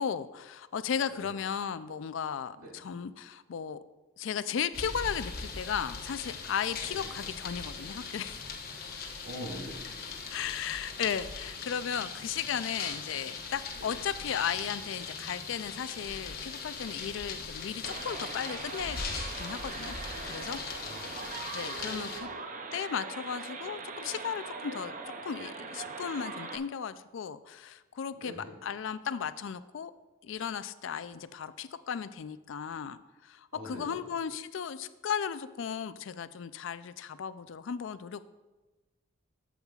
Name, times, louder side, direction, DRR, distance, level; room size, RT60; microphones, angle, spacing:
voice 1, 0.0-3.8 4.2-8.4 10.3-20.0 20.2-21.0 21.5-22.3 22.7-24.9 25.2-29.9 30.2-38.2, left 7 dB, 60° left, 14 dB, 0.3 m, -35 dB
sound 1, 4.7-22.2, left 4 dB, 45° left, 1.0 m, -40 dB
voice 2, 9.2-10.0 13.8-13.9 20.8-21.3 28.1-28.5 33.5-34.0, equal, 85° right, -1 dB, 2.6 m, -44 dB
sound 2, 17.8-26.6, right 4 dB, 35° right, 0.5 m, -41 dB
11.5 x 7.2 x 2.4 m, 1.2 s
head